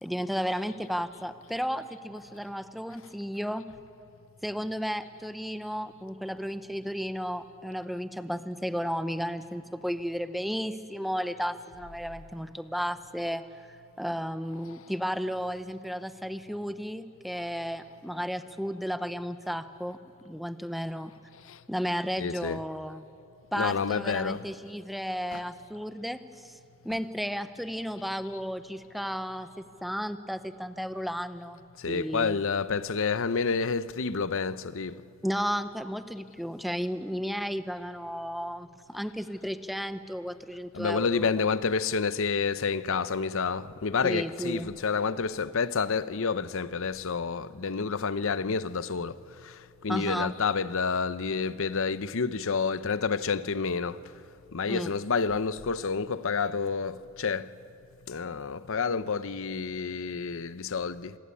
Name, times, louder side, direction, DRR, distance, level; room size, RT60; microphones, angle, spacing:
voice 1, 0.0-3.7 4.4-13.4 14.0-20.0 20.2-21.1 21.7-23.1 23.5-26.6 26.8-32.4 35.2-41.3 44.0-44.7 49.9-50.3 54.7-54.9, equal, ahead, 0.8 m, -33 dB
voice 2, 22.2-22.6 23.5-24.5 25.3-25.4 26.9-27.0 31.8-35.0 40.7-54.0 54.5-57.5 58.1-61.2, left 5 dB, 65° left, 0.7 m, -29 dB
26.5 x 20.0 x 8.5 m
head